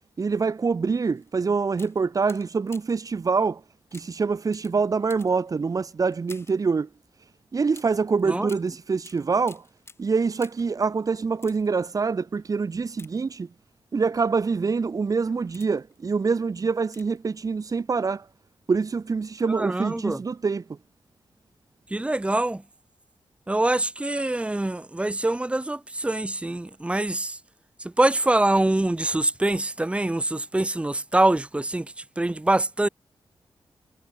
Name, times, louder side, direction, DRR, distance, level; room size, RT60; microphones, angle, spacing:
voice 1, 0.2-3.6 3.9-6.9 7.5-9.6 10.0-13.5 13.9-18.2 18.7-20.6, right 4 dB, 40° right, 2.8 m, -25 dB
sound 1, 1.2-1.3 1.7-3.1 3.9-6.7 7.7-10.8 11.3-11.9 12.9-13.7 14.4-14.6 15.2-16.0 16.8-17.3 17.6-17.7, left 3 dB, 30° left, 7.7 m, -51 dB
voice 2, 19.5-20.2 21.9-22.6 23.5-27.4 27.8-32.9, right 2 dB, 15° right, 3.0 m, -24 dB
wide cardioid pair, 155°, 9 cm